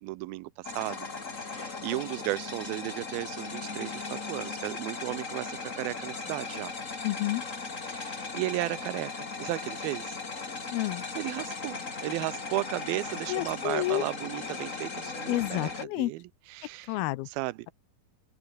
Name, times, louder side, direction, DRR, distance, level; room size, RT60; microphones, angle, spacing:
voice 1, 0.0-1.1 1.4-6.7 7.9-10.2 11.2-15.7 16.0-17.0 17.3-17.7, right 19 dB, 80° right, 2.5 m, -35 dB
sound 1, 0.6-15.9, left 4 dB, 25° left, 2.3 m, -38 dB
voice 2, 7.0-7.4 10.7-11.0 13.3-14.1 15.3-16.1 16.9-17.3, left 18 dB, 85° left, 2.7 m, -29 dB
open air
omnidirectional pair, 4.3 m